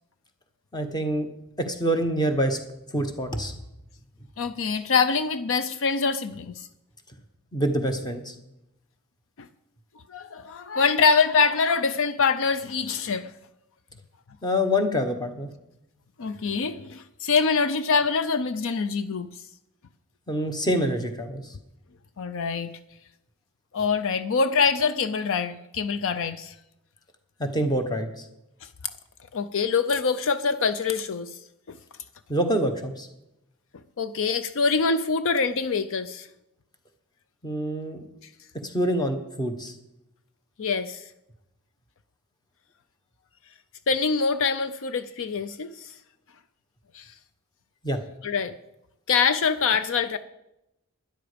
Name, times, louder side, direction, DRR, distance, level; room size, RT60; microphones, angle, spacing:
voice 1, 0.7-1.3 1.7-2.6 2.9-3.5 7.5-8.3 14.4-15.5 20.3-21.4 27.4-28.2 32.3-33.1 37.4-38.0 38.6-39.7 47.8-48.0, equal, 20° left, 1.3 m, -26 dB
voice 2, 4.4-6.7 9.4-9.5 10.1-13.3 16.2-19.4 22.2-22.7 23.7-26.5 28.6-28.7 29.3-31.4 31.7-31.8 34.0-36.3 40.6-41.0 43.9-45.9 46.9-47.1 48.2-48.5 49.1-50.2, left 5 dB, 65° left, 0.5 m, -24 dB
12.5 x 10.5 x 5.1 m
head